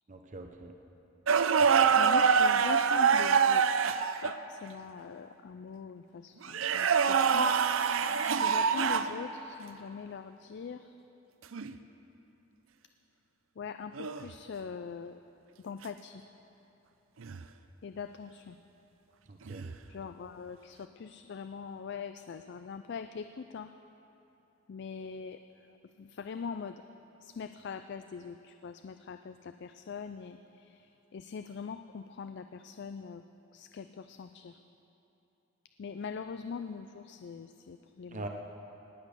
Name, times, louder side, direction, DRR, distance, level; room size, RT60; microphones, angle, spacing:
voice 1, 0.1-0.7 1.6-1.9 19.3-19.6 38.1-38.3, right 2 dB, 40° right, 3 dB, 0.8 m, -43 dB
sound 1, 1.3-4.4 6.4-9.1 11.5-11.7 14.0-14.3 17.2-17.4 19.5-19.8, right 6 dB, 85° right, 0.5 m, -25 dB
voice 2, 2.0-7.6 8.2-10.9 13.6-15.2 15.6-16.2 17.8-18.6 19.9-23.7 24.7-25.4 26.0-26.8 27.2-30.4 31.1-33.2 33.5-34.5 35.8-38.3, left 5 dB, 60° left, 10 dB, 0.4 m, -42 dB
19.0 x 8.3 x 6.7 m, 3.0 s
head